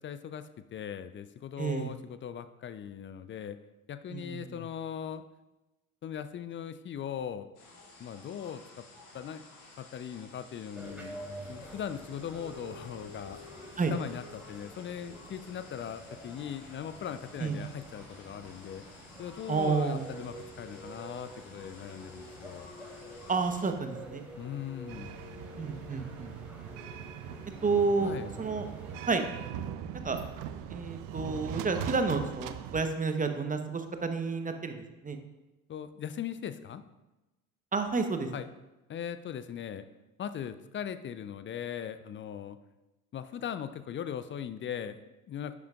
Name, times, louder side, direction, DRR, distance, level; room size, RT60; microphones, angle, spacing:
voice 1, 0.0-3.6 3.9-5.2 6.0-7.5 8.0-8.8 9.1-9.4 9.8-11.2 11.5-13.4 13.9-18.8 19.2-22.7 24.4-25.2 28.0-28.3 30.0-30.1 35.7-36.8 38.3-38.5 38.9-39.9 40.2-42.6 43.1-45.5, left 9 dB, 30° left, 12 dB, 0.5 m, -39 dB
voice 2, 1.6-1.9 4.1-4.5 13.8-13.9 17.4-17.6 19.5-20.1 23.3-24.2 25.6-26.3 27.6-28.7 29.1-29.2 30.0-30.2 30.7-35.2 37.7-38.3, right 4 dB, 20° right, 6 dB, 1.0 m, -30 dB
sound 1, 7.5-23.7, left 3 dB, 65° left, 2.6 m, -54 dB
sound 2, 10.7-29.5, equal, 5° right, 3.2 m, -48 dB
sound 3, 24.9-32.8, right 9 dB, 50° right, 0.7 m, -41 dB
11.5 x 8.2 x 2.4 m, 1.0 s
figure-of-eight pair, 60°, 42 cm